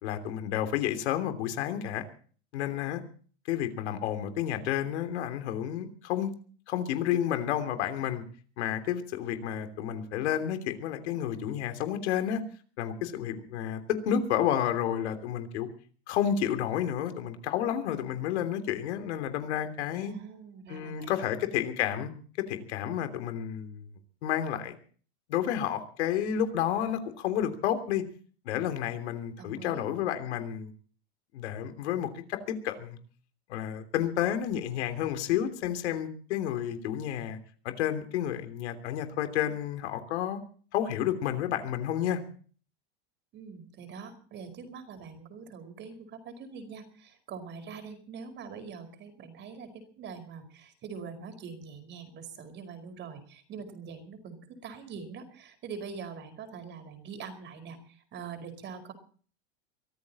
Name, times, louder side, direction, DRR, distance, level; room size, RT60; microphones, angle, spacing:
voice 1, 0.0-2.0 2.5-3.0 3.5-6.3 6.7-8.2 8.6-12.4 12.8-15.7 16.1-20.1 20.7-22.1 22.4-23.8 24.2-24.7 25.3-28.0 28.4-30.7 31.3-33.0 33.5-37.4 37.6-40.4 40.7-42.2, left 10 dB, 85° left, 9 dB, 3.2 m, -30 dB
voice 2, 19.9-21.1 29.4-29.9 43.3-58.9, right 5 dB, 35° right, 7 dB, 4.9 m, -44 dB
23.5 x 14.0 x 4.2 m, 0.43 s
supercardioid pair, 145°, 33 cm